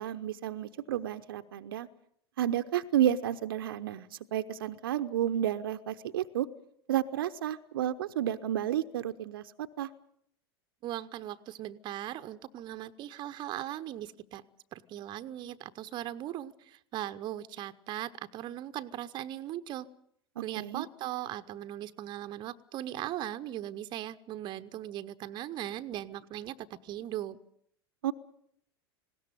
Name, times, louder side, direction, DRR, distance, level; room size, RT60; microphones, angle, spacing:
voice 1, 0.0-1.9 2.4-6.5 6.9-9.9 20.6-20.8 28.0-28.1, right 11 dB, 60° right, 10 dB, 0.8 m, -31 dB
voice 2, 10.8-14.4 14.7-19.9 20.4-27.4, right 13 dB, 35° right, 10 dB, 0.9 m, -39 dB
20.0 x 17.0 x 9.2 m, 0.70 s
figure-of-eight pair, 85°, 13 cm